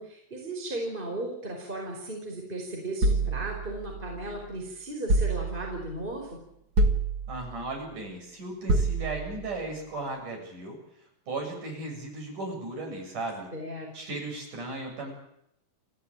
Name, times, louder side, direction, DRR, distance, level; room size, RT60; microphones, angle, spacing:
voice 1, 0.0-6.4 13.5-14.2, right 1 dB, 15° right, 1 dB, 4.8 m, -36 dB
sound 1, 3.0-4.4 5.1-5.9 6.7-7.6 8.7-9.5, right 2 dB, 40° right, 1.5 m, -27 dB
voice 2, 7.3-10.8 11.3-13.5 13.9-15.1, right 2 dB, 65° right, 1 dB, 8.6 m, -36 dB
28.0 x 16.0 x 9.0 m, 0.76 s
omnidirectional pair, 3.9 m